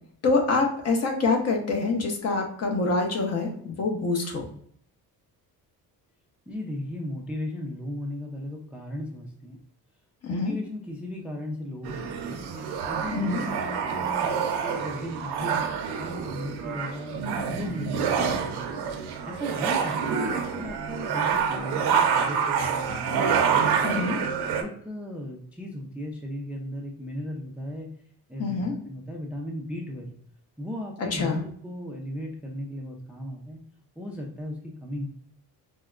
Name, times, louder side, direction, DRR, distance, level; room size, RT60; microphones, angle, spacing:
voice 1, 0.2-4.5 10.2-10.5 13.1-13.4 23.8-24.2 28.4-28.7 31.1-31.4, left 3 dB, 40° left, 2 dB, 0.8 m, -25 dB
voice 2, 6.5-9.6 10.3-12.4 12.9-15.6 16.0-17.1 17.5-18.8 19.3-23.2 23.8-24.0 24.6-27.9 28.3-30.1 30.6-33.6 34.0-35.1, left 1 dB, 5° right, 1 dB, 0.3 m, -36 dB
sound 1, 11.8-24.6, right 6 dB, 90° right, 0.6 m, -27 dB
4.6 x 2.1 x 2.3 m, 0.63 s
cardioid pair, 135°, 38 cm